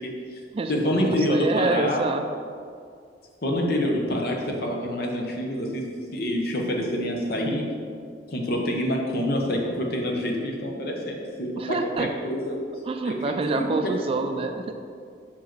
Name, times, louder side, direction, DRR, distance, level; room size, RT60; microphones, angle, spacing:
voice 1, 0.0-0.4 0.7-2.0 3.4-7.6 8.3-12.6 13.0-13.9, left 1 dB, 55° left, 0 dB, 0.9 m, -27 dB
voice 2, 0.5-2.2 11.6-12.1 12.8-14.7, right 3 dB, 30° right, 6 dB, 0.3 m, -27 dB
5.7 x 4.7 x 4.6 m, 2.2 s
head